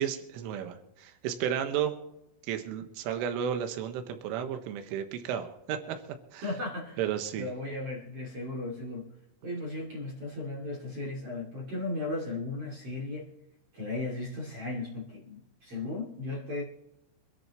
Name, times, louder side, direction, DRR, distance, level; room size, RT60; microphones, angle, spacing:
voice 1, 0.0-2.0 2.5-6.0 6.3-6.5 7.0-7.5, right 9 dB, 80° right, 3.8 m, -33 dB
voice 2, 6.4-7.0 7.3-9.1 9.4-13.3 13.7-16.6, left 2 dB, 35° right, 2.8 m, -36 dB
26.0 x 10.5 x 3.1 m
omnidirectional pair, 5.7 m